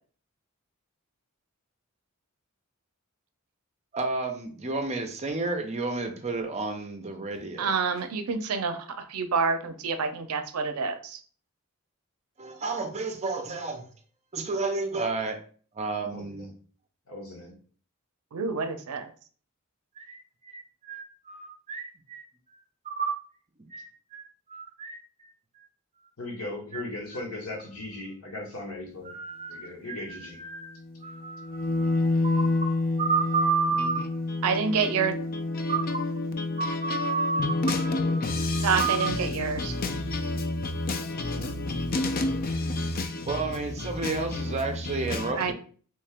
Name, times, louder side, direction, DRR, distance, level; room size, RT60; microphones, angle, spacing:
voice 1, 3.9-7.7 12.4-13.8 14.3-15.4 15.7-16.5 20.0-22.2 22.9-23.1 23.7-25.3 26.7-26.8 27.1-27.2 29.1-30.8 31.0-34.0 35.7-36.0 36.6-39.1 43.3-45.5, right 4 dB, 30° right, 0.5 m, -31 dB
voice 2, 7.6-11.2 18.3-19.1 34.4-35.2 38.6-39.8 45.4-45.5, right 5 dB, 85° right, 0.5 m, -28 dB
voice 3, 16.1-16.5 17.1-17.5 26.2-29.1 29.5-30.4, left 2 dB, 75° left, 1.2 m, -38 dB
voice 4, 30.6-45.3, left 2 dB, 45° left, 0.4 m, -29 dB
3.1 x 2.8 x 3.4 m
head